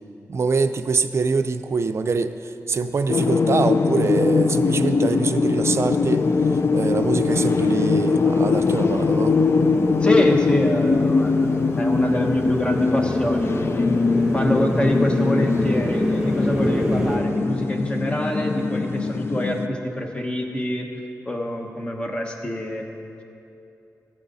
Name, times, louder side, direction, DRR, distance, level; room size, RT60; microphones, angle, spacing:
voice 1, 0.3-6.2 6.5-9.4, right 4 dB, 50° right, 10 dB, 0.5 m, -24 dB
sound 1, 3.1-19.7, left 4 dB, 45° left, 0.4 m, -21 dB
Motorcycle, 4.5-17.2, equal, 5° right, 2.1 m, -30 dB
voice 2, 10.0-11.5 11.7-13.9 14.3-20.9 21.3-22.9, left 1 dB, 20° left, 2 dB, 1.1 m, -25 dB
16.0 x 8.7 x 4.1 m, 2.8 s
wide cardioid pair, 125°, 6 cm